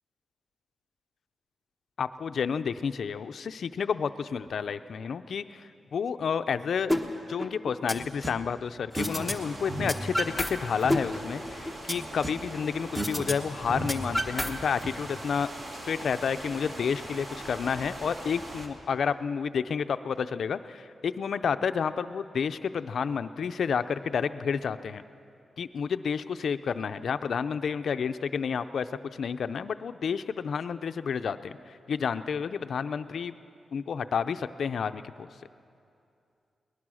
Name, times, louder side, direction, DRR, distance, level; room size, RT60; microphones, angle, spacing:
voice 1, 2.0-6.9 7.3-15.5 15.8-25.0 25.6-33.4 33.7-35.3, left 6 dB, 60° left, 11 dB, 0.5 m, -30 dB
sound 1, 6.9-7.0 7.4-8.4 8.9-9.3 9.6-10.5 10.8-12.5 12.9-13.3 13.6-14.9, equal, 10° right, 1.1 m, -30 dB
sound 2, 9.0-18.7, right 1 dB, 35° right, 2.1 m, -41 dB
21.5 x 19.5 x 6.3 m, 2.6 s
wide cardioid pair, 170°, 0 cm